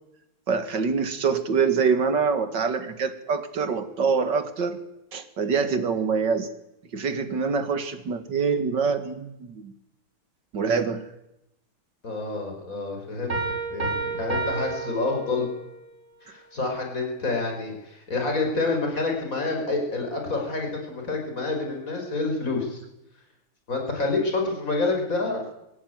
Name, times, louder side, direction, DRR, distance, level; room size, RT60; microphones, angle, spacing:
voice 1, 0.5-4.8 5.1-6.5 6.9-9.7 10.5-11.0, right 5 dB, 55° right, 9 dB, 2.6 m, -25 dB
voice 2, 12.0-13.4 13.7-15.5 16.2-22.8 23.7-25.4, left 3 dB, 35° left, 2 dB, 6.0 m, -28 dB
Piano, 13.3-15.8, right 3 dB, 35° right, 5.7 m, -30 dB
23.5 x 17.0 x 9.5 m, 0.89 s
omnidirectional pair, 2.4 m